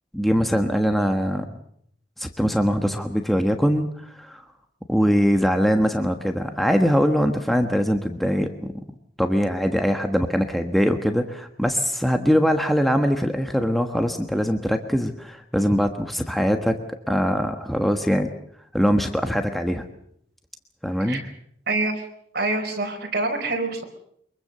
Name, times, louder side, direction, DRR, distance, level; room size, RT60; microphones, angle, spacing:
voice 1, 0.1-1.6 2.2-4.4 4.9-8.7 9.2-16.8 17.1-18.3 18.7-19.8 20.8-21.2, equal, ahead, 5 dB, 1.3 m, -22 dB
voice 2, 21.7-22.0 22.3-23.8, right 2 dB, 55° right, 2 dB, 4.8 m, -25 dB
24.0 x 22.5 x 6.7 m, 0.70 s
head